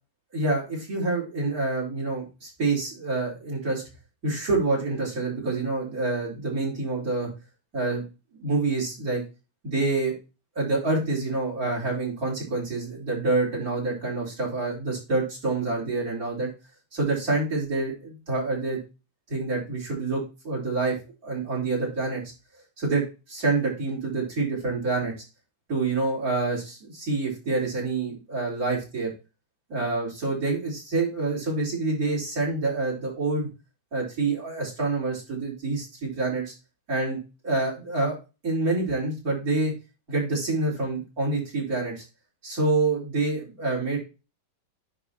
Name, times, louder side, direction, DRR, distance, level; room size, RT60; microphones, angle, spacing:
voice 1, 0.3-3.8 4.2-7.3 7.7-8.0 8.3-9.2 9.6-10.1 10.6-16.5 16.9-18.8 19.3-20.9 21.2-22.2 22.8-23.0 23.3-25.1 25.7-29.1 29.7-33.5 33.9-36.4 36.9-37.2 37.4-38.2 38.4-39.7 40.1-42.0 42.4-44.0, right 3 dB, 40° right, -4 dB, 4.6 m, -27 dB
10.0 x 3.8 x 4.3 m, 0.29 s
omnidirectional pair, 2.3 m